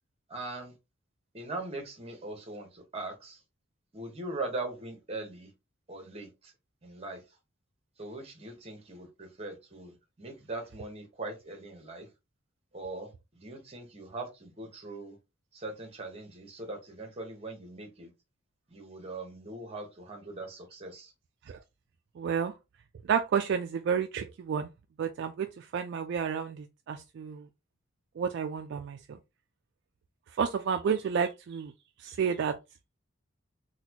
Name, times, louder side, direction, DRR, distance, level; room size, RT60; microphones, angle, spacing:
voice 1, 0.3-0.7 1.3-3.4 3.9-5.5 5.9-6.5 6.8-7.2 8.0-12.1 12.7-13.1 13.3-15.2 15.5-18.1 18.7-21.1, right 2 dB, 30° right, 1.0 m, -41 dB
voice 2, 22.2-22.5 23.1-24.7 25.0-27.5 28.2-29.0 30.4-31.7 32.0-32.6, right 7 dB, 60° right, 0.3 m, -30 dB
4.0 x 2.2 x 2.8 m
head